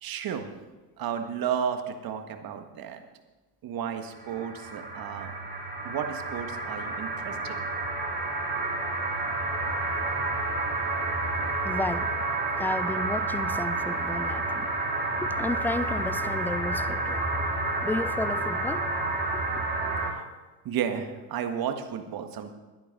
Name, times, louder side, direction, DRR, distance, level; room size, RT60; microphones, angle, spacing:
voice 1, 0.0-0.5 1.0-3.0 3.6-5.3 5.8-7.6 11.4-11.5 20.1-20.3 20.6-22.5, right 8 dB, 50° right, 1.6 m, -33 dB
sound 1, 4.1-20.1, right 2 dB, 20° right, 3.6 m, -30 dB
voice 2, 11.6-12.1 12.6-14.7 15.2-17.2 17.8-18.8 19.3-19.4, left 2 dB, 5° left, 0.4 m, -32 dB
12.0 x 10.5 x 5.3 m
hypercardioid pair, 80°, 47 cm